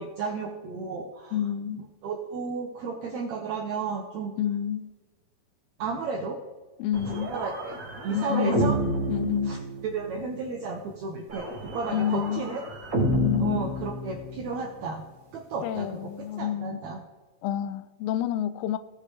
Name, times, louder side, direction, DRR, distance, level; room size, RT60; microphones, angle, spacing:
voice 1, 0.0-1.3 1.7-4.3 5.8-6.4 7.1-7.8 8.0-8.8 9.5-9.6 9.8-11.5 11.7-12.6 13.4-15.0 15.3-16.1 16.4-17.0, right 4 dB, 85° right, 1.6 m, -32 dB
voice 2, 1.3-1.9 4.4-4.9 6.8-7.4 8.1-8.8 9.1-9.6 11.9-12.5 13.1-13.7 15.6-16.8 17.4-18.8, left 10 dB, 85° left, 2.4 m, -29 dB
sound 1, 6.9-10.2 11.3-14.6, equal, 50° right, 0.9 m, -30 dB
16.0 x 6.6 x 3.2 m
omnidirectional pair, 4.3 m